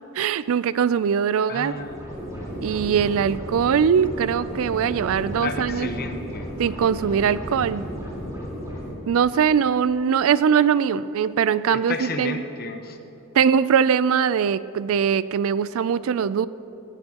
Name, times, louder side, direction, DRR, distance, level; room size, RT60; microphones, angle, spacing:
voice 1, 0.1-1.7 2.6-5.9 6.6-7.8 9.1-12.4 13.3-16.5, right 7 dB, 70° right, 16 dB, 0.4 m, -21 dB
voice 2, 1.5-2.0 5.4-6.5 11.7-13.0, left 3 dB, 45° left, 6 dB, 1.0 m, -32 dB
sound 1, 1.6-8.9, equal, 15° right, 3.9 m, -34 dB
19.0 x 16.5 x 2.9 m, 2.9 s
head